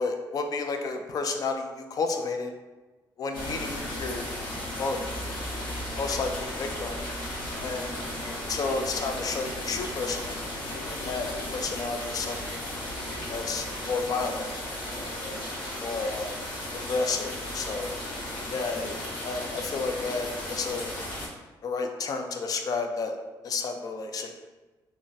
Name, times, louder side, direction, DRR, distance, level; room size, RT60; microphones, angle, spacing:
voice 1, 0.0-2.5 3.2-4.3 4.8-5.0 6.0-7.0 7.6-7.9 8.2-10.4 10.9-12.6 13.3-14.5 14.8-15.3 15.8-16.4 16.9-17.9 18.5-20.9 21.6-23.2 23.4-24.3, left 4 dB, 50° left, 5 dB, 0.4 m, -31 dB
sound 1, 3.3-21.3, left 1 dB, 85° left, 0.9 m, -35 dB
2.5 x 2.1 x 3.9 m, 1.2 s
cardioid pair, 130°, 8 cm